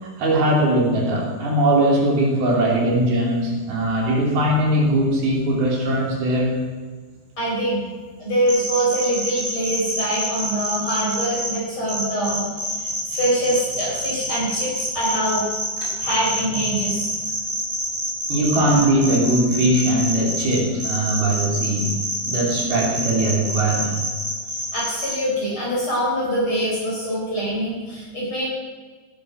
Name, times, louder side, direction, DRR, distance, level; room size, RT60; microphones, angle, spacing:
voice 1, 0.0-6.6 18.3-24.0, right 1 dB, 55° right, -1 dB, 4.7 m, -20 dB
voice 2, 7.4-7.8 8.2-12.5 12.7-15.5 15.8-17.1 24.7-28.5, right 1 dB, 25° left, -6 dB, 5.5 m, -24 dB
sound 1, 8.5-11.5 11.9-25.1, right 1 dB, 15° right, 3.6 m, -27 dB
19.0 x 11.0 x 6.2 m, 1.4 s
omnidirectional pair, 5.6 m